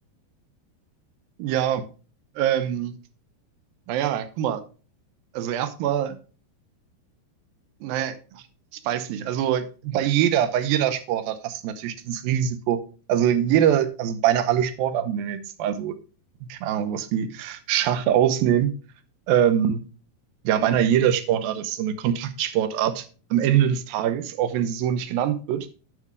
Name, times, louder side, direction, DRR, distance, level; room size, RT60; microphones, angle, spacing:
voice 1, 1.4-1.8 2.4-3.0 3.9-4.6 5.3-6.2 7.8-8.4 8.8-12.8 13.1-16.0 16.4-18.7 19.3-19.8 20.4-23.1 23.3-25.7, right 10 dB, 80° right, 2.6 m, -23 dB
10.5 x 9.6 x 2.4 m
omnidirectional pair, 4.4 m